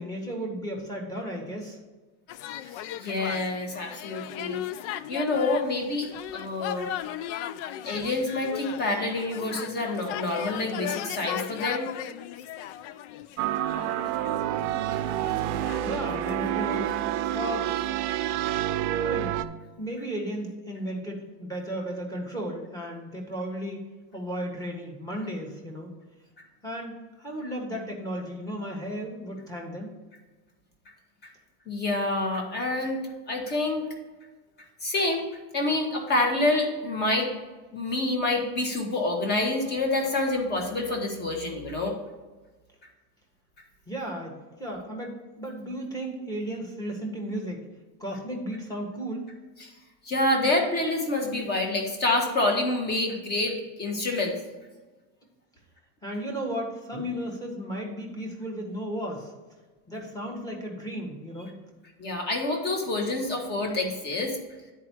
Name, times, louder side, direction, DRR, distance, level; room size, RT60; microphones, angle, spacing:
voice 1, 0.0-1.8 7.8-7.9 15.8-17.7 19.0-19.3 19.8-23.8 24.1-25.9 26.6-29.9 43.9-47.6 48.0-49.2 56.0-59.3 59.9-61.5, equal, 10° left, -1 dB, 1.5 m, -34 dB
sound 1, 2.3-17.9, left 11 dB, 65° left, 0.5 m, -38 dB
voice 2, 2.6-4.6 4.9-6.9 7.8-11.9 31.7-33.0 33.3-33.8 34.8-35.2 35.5-37.3 37.7-42.0 49.6-49.7 50.0-54.3 56.9-57.0 62.0-64.4, left 2 dB, 25° left, 2 dB, 1.5 m, -27 dB
sound 2, 13.4-19.4, right 12 dB, 65° right, 0.6 m, -28 dB
9.8 x 4.7 x 4.6 m, 1.3 s
cardioid pair, 160°, 39 cm